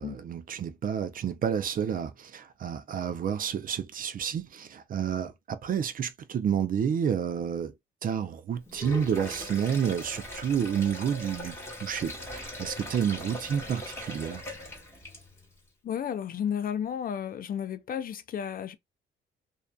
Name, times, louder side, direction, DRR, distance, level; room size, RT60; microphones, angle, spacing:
voice 1, 0.0-7.7 8.0-14.4, right 8 dB, 45° right, 0.4 m, -30 dB
Sink (filling or washing), 8.7-15.5, left 1 dB, 10° left, 1.2 m, -40 dB
voice 2, 15.8-18.7, left 8 dB, 45° left, 0.4 m, -32 dB
2.5 x 2.2 x 2.3 m
cardioid pair, 90°, 20 cm